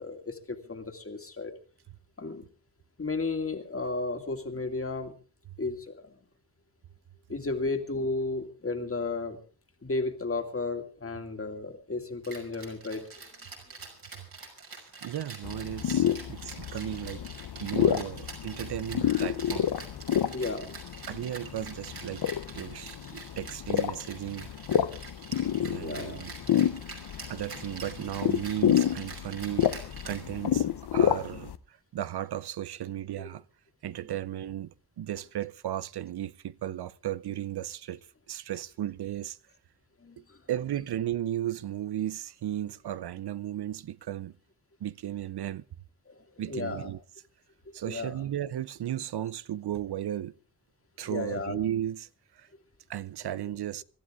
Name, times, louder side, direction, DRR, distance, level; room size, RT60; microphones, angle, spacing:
voice 1, 0.0-1.5 2.2-2.4 3.0-5.1 5.6-6.0 7.3-9.4 9.8-13.1 15.2-15.4 17.1-17.2 20.3-20.7 25.8-26.2 33.2-33.3 40.0-40.7 46.1-46.9 47.8-48.3 51.0-51.6, left 3 dB, 35° left, 2.3 m, -34 dB
Rattle (instrument), 12.2-30.7, right 4 dB, 70° right, 5.6 m, -45 dB
voice 2, 15.0-17.2 17.6-19.7 21.1-22.2 22.5-24.5 25.6-26.3 27.3-33.4 33.8-38.0 38.3-39.4 40.5-44.3 44.8-45.6 46.4-47.0 47.7-50.3 51.0-52.1 52.4-52.5 52.9-53.8, right 11 dB, 85° right, 0.6 m, -35 dB
sound 1, 15.4-31.6, left 10 dB, 85° left, 0.9 m, -29 dB
25.5 x 12.5 x 3.6 m
wide cardioid pair, 95°, 38 cm